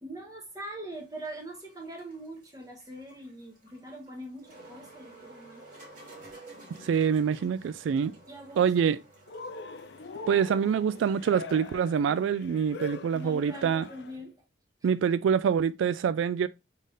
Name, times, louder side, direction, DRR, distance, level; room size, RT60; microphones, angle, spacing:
voice 1, 0.0-5.6 8.3-8.7 13.1-14.4, right 1 dB, 20° right, 1.5 m, -42 dB
sound 1, 0.9-14.0, right 2 dB, 45° right, 2.4 m, -53 dB
voice 2, 6.8-8.1 8.6-9.0 10.3-13.9 14.8-16.5, right 7 dB, 85° right, 0.3 m, -25 dB
Cheering, 9.3-14.2, left 4 dB, 65° left, 0.4 m, -43 dB
4.0 x 3.6 x 3.5 m
head